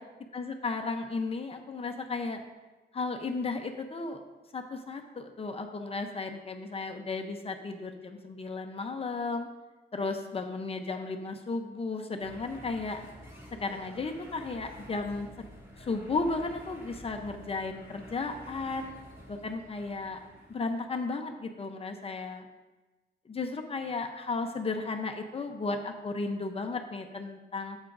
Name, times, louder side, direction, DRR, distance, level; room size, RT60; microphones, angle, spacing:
voice 1, 0.3-2.4 2.9-4.2 4.5-9.5 9.9-13.0 13.6-15.3 15.8-18.9 19.3-20.2 20.5-22.5 23.3-27.8, left 3 dB, 30° left, 5 dB, 0.7 m, -34 dB
sound 1, 12.2-20.8, equal, 15° right, 2.1 m, -50 dB
13.5 x 8.1 x 2.6 m, 1.2 s
wide cardioid pair, 165°, 19 cm